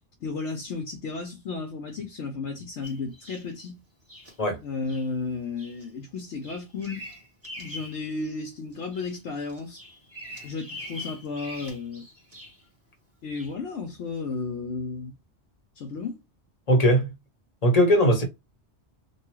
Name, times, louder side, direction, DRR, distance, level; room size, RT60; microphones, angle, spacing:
voice 1, 0.2-3.7 4.6-7.0 7.6-9.8 10.4-12.0 13.2-15.1 15.8-16.2, left 4 dB, 80° left, 1.0 m, -33 dB
Bird vocalization bird call bird song, 2.8-3.5 4.1-4.3 4.9-5.1 5.6-5.9 6.2-8.0 8.4-9.2 9.5-12.7 13.3-13.5, left 1 dB, 15° right, 1.1 m, -43 dB
voice 2, 16.7-17.1 17.6-18.2, equal, 35° left, 0.9 m, -19 dB
2.9 x 2.3 x 3.0 m
omnidirectional pair, 1.2 m